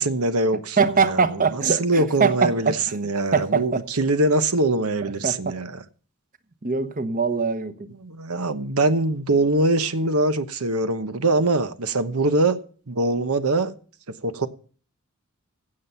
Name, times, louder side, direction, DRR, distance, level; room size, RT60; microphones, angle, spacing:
voice 1, 0.0-1.2 1.8-5.7 8.0-12.6 12.9-13.7 14.2-14.5, right 2 dB, 90° right, 1.0 m, -23 dB
voice 2, 0.8-3.0 3.3-3.8 5.0-5.6 6.6-7.9, right 5 dB, 40° right, 1.1 m, -23 dB
16.5 x 7.6 x 5.6 m
head